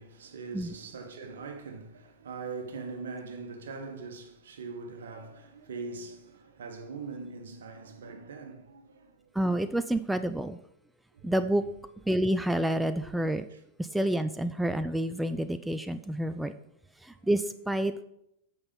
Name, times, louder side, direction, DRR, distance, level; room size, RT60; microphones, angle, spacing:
voice 1, 0.0-9.3 11.1-11.3 13.5-13.6, right 4 dB, 65° right, 1.4 m, -42 dB
voice 2, 9.3-10.6 11.2-11.6 12.1-13.4 13.8-16.5 17.0-18.0, right 1 dB, 5° right, 0.4 m, -28 dB
8.6 x 6.2 x 5.4 m
figure-of-eight pair, 95°, 0 cm